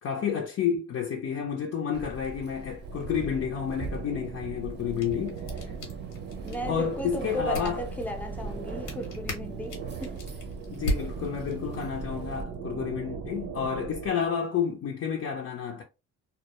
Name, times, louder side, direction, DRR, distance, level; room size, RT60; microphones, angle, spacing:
voice 1, 0.0-5.7 6.7-7.8 10.7-15.8, left 7 dB, 55° left, 0.5 m, -30 dB
Keys jangling, 1.9-12.4, right 2 dB, 35° right, 0.6 m, -42 dB
sound 1, 2.8-14.1, right 6 dB, 80° right, 0.6 m, -39 dB
sound 2, 4.7-11.8, left 1 dB, 85° left, 1.0 m, -39 dB
voice 2, 6.4-10.2, equal, 5° left, 0.5 m, -35 dB
2.1 x 2.1 x 2.8 m
cardioid pair, 90°, 30 cm